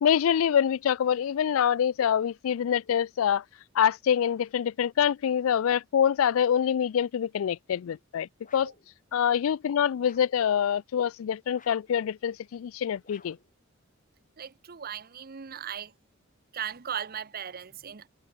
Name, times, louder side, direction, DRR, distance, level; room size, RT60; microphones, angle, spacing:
voice 1, 0.0-3.4 3.7-8.7 9.1-13.4, left 8 dB, 80° left, 0.3 m, -25 dB
sound 1, 8.4-8.9 10.0-10.5 11.5-12.0 13.0-13.5, left 5 dB, 40° left, 7.5 m, -57 dB
voice 2, 14.4-15.9 16.5-18.1, right 8 dB, 45° right, 0.7 m, -37 dB
head